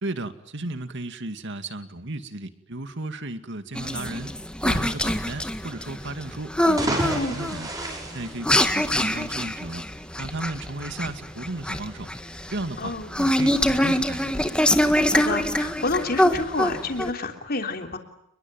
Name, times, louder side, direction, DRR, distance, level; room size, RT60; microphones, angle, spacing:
voice 1, 0.0-4.3 4.6-7.7 8.1-9.8 10.2-12.1 12.5-14.3, right 2 dB, 55° right, 9 dB, 2.2 m, -34 dB
sound 1, 3.7-17.1, left 1 dB, 5° left, 1.7 m, -24 dB
sound 2, 6.6-9.2, right 1 dB, 15° right, 7.0 m, -31 dB
voice 2, 12.8-13.1 15.1-18.0, left 3 dB, 45° left, 5 dB, 3.4 m, -29 dB
29.5 x 22.0 x 9.2 m, 0.78 s
head